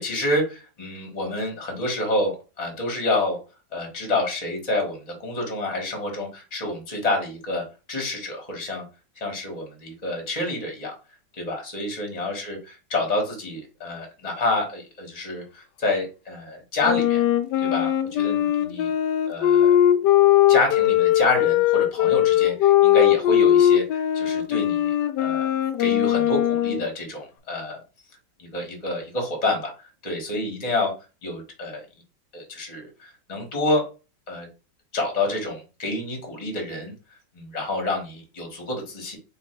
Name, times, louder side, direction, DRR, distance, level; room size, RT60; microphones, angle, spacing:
voice 1, 0.0-3.4 3.7-8.8 9.1-11.0 11.4-17.2 17.6-18.9 19.3-19.7 20.5-24.9 25.2-25.5 25.8-27.8 28.4-30.9 31.2-31.8 32.3-33.9 34.3-34.5 34.9-36.9 37.3-39.2, left 2 dB, 25° left, 1 dB, 1.4 m, -28 dB
Wind instrument woodwind instrument, 16.8-26.9, left 12 dB, 80° left, 1.2 m, -19 dB
3.6 x 3.2 x 4.4 m, 0.31 s
omnidirectional pair, 1.9 m